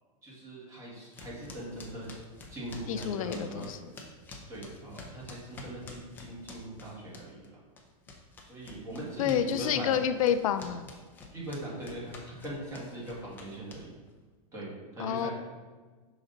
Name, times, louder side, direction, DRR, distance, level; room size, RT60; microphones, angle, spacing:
voice 1, 0.2-2.1 2.5-3.7 4.5-7.4 8.5-9.9 11.3-13.9 14.5-15.3, right 1 dB, 15° right, -6 dB, 1.8 m, -40 dB
sound 1, 1.1-7.5 7.8-14.1, left 3 dB, 10° left, 0.6 m, -48 dB
voice 2, 2.9-3.8 9.2-10.9 15.0-15.3, left 9 dB, 70° left, 10 dB, 0.4 m, -29 dB
6.0 x 4.0 x 3.9 m, 1.4 s
supercardioid pair, 160°, 18 cm